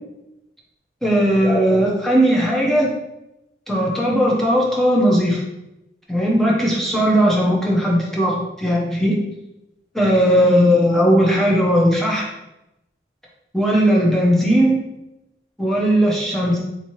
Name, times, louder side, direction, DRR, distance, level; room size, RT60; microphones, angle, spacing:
voice 1, 1.0-2.9 3.7-5.4 6.1-9.2 9.9-12.2 13.5-14.8 15.6-16.6, equal, ahead, -4 dB, 0.6 m, -17 dB
3.6 x 2.9 x 3.0 m, 0.90 s
head